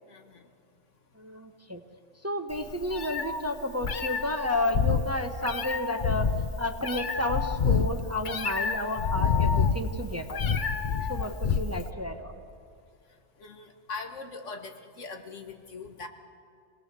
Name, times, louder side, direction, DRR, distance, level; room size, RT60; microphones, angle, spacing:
voice 1, 0.1-0.5 11.0-11.3 13.4-16.1, left 4 dB, 75° left, 4 dB, 1.8 m, -41 dB
voice 2, 1.2-1.8 2.2-6.3 6.6-10.4 11.1-12.3, left 1 dB, 15° right, 5 dB, 0.9 m, -31 dB
Meow, 2.5-11.9, left 6 dB, 45° left, 0.9 m, -28 dB
27.0 x 19.0 x 6.8 m, 2.4 s
omnidirectional pair, 1.3 m